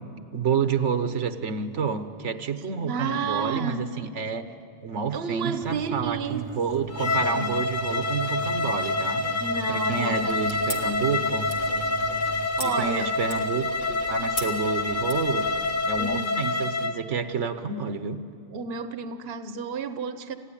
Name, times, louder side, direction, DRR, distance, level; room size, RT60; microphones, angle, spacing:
voice 1, 0.3-4.5 4.8-9.4 9.7-11.5 12.6-15.5 15.8-18.2, right 6 dB, 80° right, 10 dB, 1.3 m, -29 dB
voice 2, 2.5-3.9 5.1-6.5 7.2-7.6 9.4-10.4 12.6-13.1 16.0-16.3 18.5-20.3, right 5 dB, 60° right, 10 dB, 1.1 m, -31 dB
sound 1, 5.6-12.5, right 5 dB, 30° right, 0.8 m, -40 dB
Bowed string instrument, 6.9-17.0, left 3 dB, 45° left, 1.1 m, -27 dB
sound 2, 10.3-16.0, left 1 dB, 80° left, 2.4 m, -41 dB
29.5 x 15.5 x 9.9 m, 2.4 s
omnidirectional pair, 1.2 m